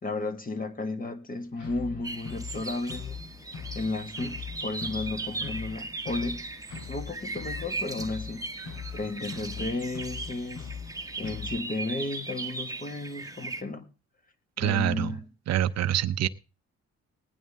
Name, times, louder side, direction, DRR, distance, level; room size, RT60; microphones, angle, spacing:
voice 1, 0.0-3.2 3.7-6.5 6.9-13.8 14.6-15.2, left 2 dB, 30° left, 1.6 m, -34 dB
sound 1, 1.6-11.6, left 6 dB, 85° left, 3.8 m, -41 dB
sound 2, 2.0-13.6, right 3 dB, 10° right, 1.1 m, -38 dB
voice 2, 14.6-15.2 15.5-16.3, right 11 dB, 60° right, 0.7 m, -26 dB
19.5 x 9.2 x 3.5 m
cardioid pair, 90°, 30 cm